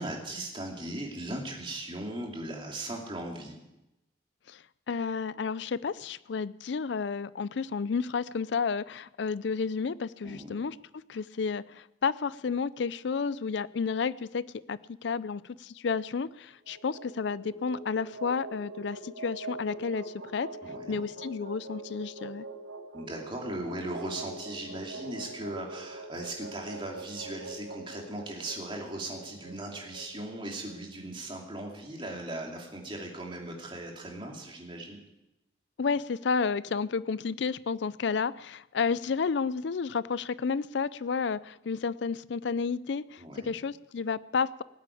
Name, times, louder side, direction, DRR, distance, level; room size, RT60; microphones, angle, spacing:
voice 1, 0.0-3.6 10.2-10.6 20.6-21.0 22.9-35.0 43.2-43.5, right 1 dB, 25° right, 0 dB, 2.7 m, -38 dB
voice 2, 4.9-10.8 11.1-20.0 20.3-20.5 20.9-22.5 35.8-44.6, left 5 dB, 65° left, 19 dB, 0.4 m, -31 dB
sound 1, 16.5-30.8, right 2 dB, 90° right, 2.8 m, -43 dB
18.5 x 8.3 x 8.4 m, 0.92 s
head